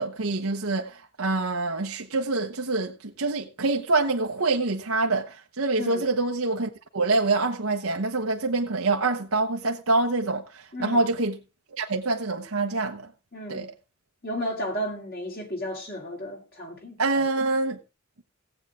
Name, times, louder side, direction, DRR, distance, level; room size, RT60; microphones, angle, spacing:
voice 1, 0.0-11.3 11.8-13.1 13.5-13.7 17.0-17.8, right 3 dB, 85° right, 1.0 m, -26 dB
voice 2, 10.7-11.0 13.3-13.7 14.2-17.0, equal, 45° left, 2.7 m, -33 dB
17.5 x 8.0 x 3.6 m
head